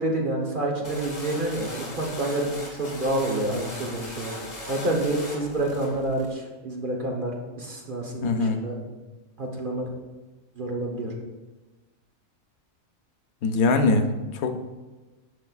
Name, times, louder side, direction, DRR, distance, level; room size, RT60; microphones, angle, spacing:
voice 1, 0.0-4.4 4.7-8.7 9.4-9.9 10.6-11.1, right 1 dB, 40° right, 0 dB, 1.1 m, -28 dB
sound 1, 0.8-6.3, left 1 dB, 30° left, 1.4 m, -39 dB
voice 2, 8.2-8.6 13.4-14.1 14.3-14.5, left 3 dB, 90° left, 6 dB, 1.2 m, -21 dB
9.8 x 6.4 x 2.4 m, 1.2 s
omnidirectional pair, 1.4 m